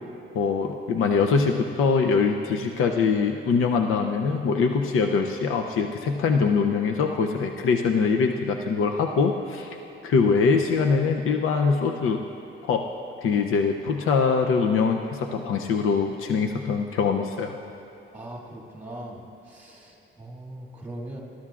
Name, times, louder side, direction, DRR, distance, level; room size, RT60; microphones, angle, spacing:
voice 1, 0.3-9.7 10.0-12.2 12.7-12.8 13.2-17.6, left 5 dB, 90° left, 3 dB, 0.6 m, -23 dB
voice 2, 18.1-21.2, right 1 dB, 10° right, -2 dB, 1.9 m, -40 dB
19.5 x 12.5 x 2.4 m, 2.9 s
cardioid pair, 145°, 21 cm